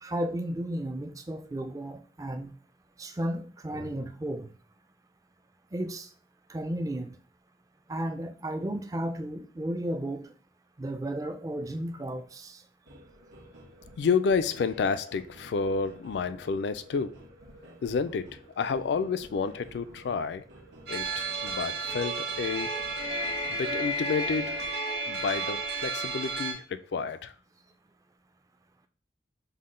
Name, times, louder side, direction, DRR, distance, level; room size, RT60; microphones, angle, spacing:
voice 1, 0.0-2.5 3.0-4.5 5.7-6.1 6.5-7.1 7.9-10.3 10.8-12.6, right 1 dB, 20° right, 0.4 m, -33 dB
sound 1, 12.8-24.7, right 1 dB, 85° right, 1.1 m, -51 dB
voice 2, 14.0-17.1 17.8-20.4 20.9-22.7 23.5-24.6 25.1-27.3, left 5 dB, 70° left, 0.3 m, -30 dB
sound 2, 20.9-26.5, right 2 dB, 65° right, 1.2 m, -32 dB
5.6 x 2.1 x 3.7 m
head